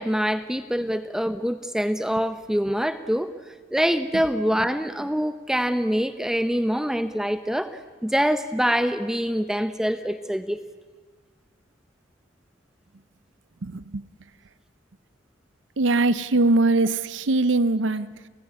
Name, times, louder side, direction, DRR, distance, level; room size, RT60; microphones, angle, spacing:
voice 1, 0.0-3.3 3.7-10.6, equal, 5° right, 11 dB, 0.7 m, -25 dB
voice 2, 13.6-14.0 15.8-18.1, right 2 dB, 75° right, 15 dB, 0.7 m, -21 dB
30.0 x 16.5 x 9.8 m, 1.5 s
head